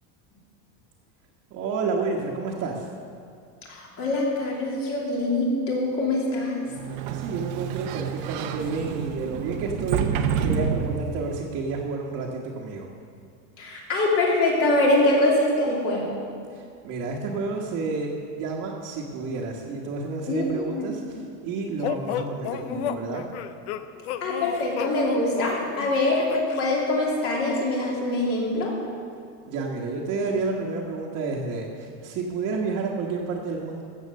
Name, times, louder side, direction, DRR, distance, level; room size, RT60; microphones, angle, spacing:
voice 1, 1.5-2.9 7.1-12.9 16.5-23.2 29.5-33.8, right 4 dB, 40° right, -4 dB, 1.4 m, -30 dB
voice 2, 3.7-6.6 13.6-16.2 20.3-20.8 22.6-22.8 24.2-28.7, left 2 dB, 35° left, -2 dB, 2.8 m, -24 dB
Sliding door, 6.7-11.5, right 7 dB, 60° right, 0.9 m, -29 dB
sound 1, 21.8-26.6, left 10 dB, 65° left, 0.7 m, -33 dB
14.5 x 7.7 x 6.5 m, 2.3 s
cardioid pair, 170°, 36 cm